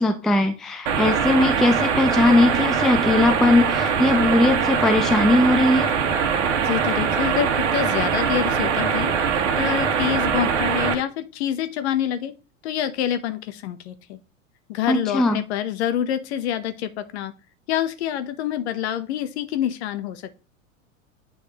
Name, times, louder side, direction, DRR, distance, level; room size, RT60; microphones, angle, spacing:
voice 1, 0.0-5.9 14.9-15.4, left 2 dB, ahead, 8 dB, 0.4 m, -19 dB
sound 1, 0.9-10.9, right 6 dB, 60° right, 1.5 m, -22 dB
voice 2, 6.6-9.1 9.6-12.3 12.6-14.2 14.7-17.3 17.7-20.4, left 10 dB, 55° left, 12 dB, 1.0 m, -26 dB
9.1 x 5.1 x 3.0 m, 0.33 s
figure-of-eight pair, 90°, 40 cm